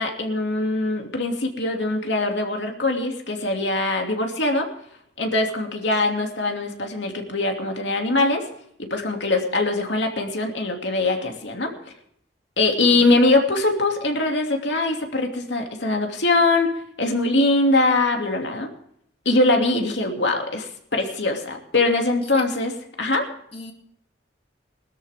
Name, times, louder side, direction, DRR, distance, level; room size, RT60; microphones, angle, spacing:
voice 1, 0.0-4.7 5.2-8.4 8.8-11.7 12.6-16.7 17.0-18.7 19.2-22.7 23.0-23.2, left 2 dB, 75° left, 3 dB, 2.7 m, -22 dB
voice 2, 12.6-13.2 22.2-22.5 23.5-23.7, left 2 dB, 35° left, 2 dB, 2.9 m, -36 dB
21.5 x 13.0 x 3.7 m, 0.68 s
head